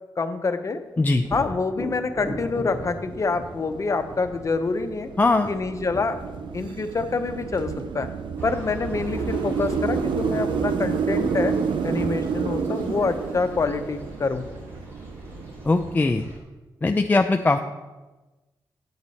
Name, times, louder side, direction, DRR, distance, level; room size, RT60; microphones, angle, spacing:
voice 1, 0.2-0.8 1.3-5.1 5.5-6.2 6.5-8.1 8.4-11.5 11.8-14.4, left 4 dB, 40° left, 7 dB, 0.8 m, -26 dB
Thunder, 1.2-8.9 12.5-12.6 13.1-14.0, left 1 dB, 5° right, 2.4 m, -39 dB
sound 1, 2.5-16.0, right 6 dB, 85° right, 0.5 m, -30 dB
voice 2, 5.2-5.5 15.7-16.2 16.8-17.6, left 3 dB, 20° left, 5 dB, 0.4 m, -20 dB
sound 2, 8.4-16.4, right 1 dB, 30° right, 3.3 m, -39 dB
9.8 x 8.0 x 4.1 m, 1.2 s
wide cardioid pair, 110°, 8 cm